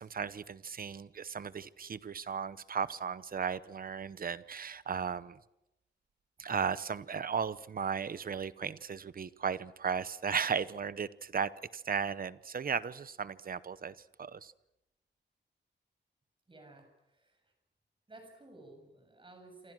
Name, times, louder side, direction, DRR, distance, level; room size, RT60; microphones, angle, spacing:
voice 1, 0.0-5.4 6.4-14.5, right 6 dB, 50° right, 16 dB, 0.8 m, -36 dB
voice 2, 16.5-17.5 18.1-19.7, right 2 dB, 25° right, 5 dB, 6.7 m, -55 dB
27.5 x 27.0 x 6.3 m, 0.89 s
wide cardioid pair, 165°, 19 cm